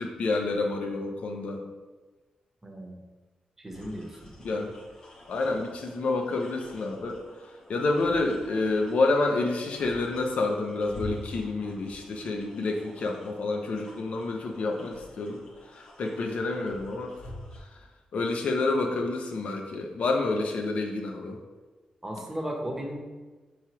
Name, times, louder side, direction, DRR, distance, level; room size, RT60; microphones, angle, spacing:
voice 1, 0.0-1.6 4.4-4.7 5.3-7.2 7.7-15.4 15.7-17.2 18.1-21.4, left 3 dB, 70° left, 2 dB, 0.6 m, -28 dB
voice 2, 2.6-3.0 3.6-4.3 22.0-23.0, equal, 15° right, 0 dB, 0.8 m, -35 dB
sound 1, 3.7-17.6, left 1 dB, 35° left, 1.1 m, -47 dB
4.8 x 3.0 x 2.9 m, 1.3 s
cardioid pair, 75°, 2 cm